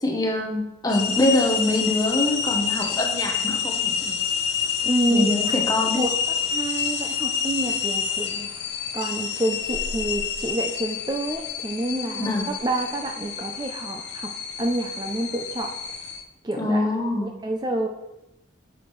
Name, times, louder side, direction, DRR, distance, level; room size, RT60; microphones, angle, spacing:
voice 1, 0.0-4.2 5.1-6.0 12.2-12.5 16.6-17.3, left 1 dB, 20° left, 1 dB, 0.8 m, -24 dB
sound 1, 0.9-16.2, left 7 dB, 70° left, 0.7 m, -28 dB
voice 2, 4.8-5.6 5.9-6.1 6.5-8.5 8.9-14.3 14.6-15.7 16.4-16.9 17.2-17.9, right 1 dB, 20° right, 3 dB, 0.4 m, -28 dB
6.9 x 5.9 x 3.1 m, 0.92 s
head